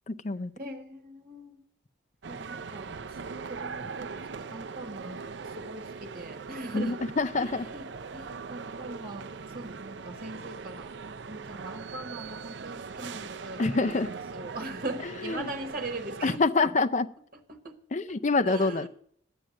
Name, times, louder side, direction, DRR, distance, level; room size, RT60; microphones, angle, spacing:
voice 1, 0.1-0.5 6.7-7.7 13.6-14.1 15.2-15.5 16.2-17.1 17.9-18.9, left 3 dB, 40° left, 14 dB, 0.5 m, -26 dB
voice 2, 0.6-1.6 2.3-5.2 5.5-7.0 7.4-10.9 11.3-16.7 17.5-17.7 18.1-18.2 18.4-18.9, right 2 dB, 50° right, 5 dB, 1.2 m, -41 dB
sound 1, 2.2-16.4, right 5 dB, 70° right, 0.6 m, -41 dB
11.5 x 9.0 x 6.3 m, 0.64 s
head